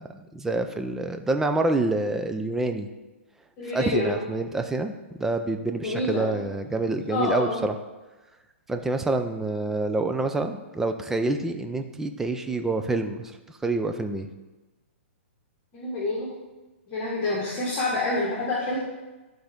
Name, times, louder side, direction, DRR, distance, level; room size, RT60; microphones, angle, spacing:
voice 1, 0.0-2.9 3.7-7.7 8.7-13.3 13.6-14.3, right 2 dB, 5° right, 7 dB, 0.4 m, -27 dB
voice 2, 3.6-4.1 5.8-6.3 7.1-7.6 15.7-16.3 16.9-18.8, left 2 dB, 30° left, -5 dB, 1.6 m, -27 dB
11.0 x 3.9 x 3.5 m, 1.2 s
hypercardioid pair, 145°, 7 cm